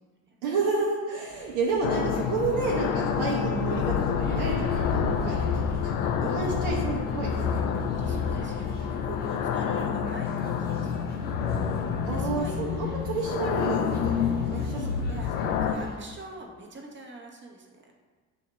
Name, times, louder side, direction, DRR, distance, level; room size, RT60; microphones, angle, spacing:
voice 1, 0.4-8.2 8.9-9.2 12.0-14.9 15.4-15.5, right 4 dB, 65° right, -3 dB, 0.8 m, -31 dB
sound 1, 1.3-16.0, left 1 dB, 20° left, 1.0 m, -47 dB
sound 2, 1.8-15.7, left 7 dB, 65° left, 0.5 m, -28 dB
voice 2, 7.4-11.1 12.1-12.5 14.4-15.3 15.6-17.9, right 2 dB, 25° right, 1 dB, 0.8 m, -45 dB
7.4 x 2.8 x 2.3 m, 1.4 s
figure-of-eight pair, 45°, 48 cm